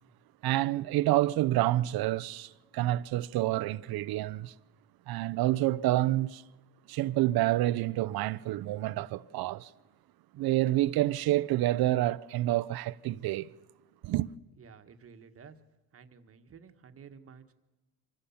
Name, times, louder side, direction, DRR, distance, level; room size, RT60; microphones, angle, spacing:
voice 1, 0.4-4.5 5.1-6.4 6.9-9.7 10.3-13.5 14.0-14.3, right 15 dB, 70° right, 0.7 m, -28 dB
voice 2, 14.6-15.6 15.9-17.5, right 6 dB, 35° right, 1.4 m, -52 dB
25.5 x 15.5 x 7.1 m
cardioid pair, 130°, 38 cm